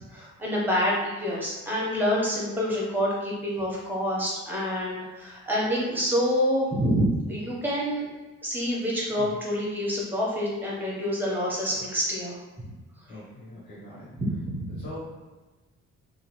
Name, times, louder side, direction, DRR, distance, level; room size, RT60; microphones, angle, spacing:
voice 1, 0.1-8.0 8.4-12.4 14.2-14.8, equal, 5° right, -5 dB, 1.2 m, -27 dB
voice 2, 13.1-14.1 14.7-15.0, left 1 dB, 80° left, -8 dB, 1.4 m, -42 dB
2.8 x 2.5 x 3.1 m, 1.2 s
cardioid pair, 90°, 30 cm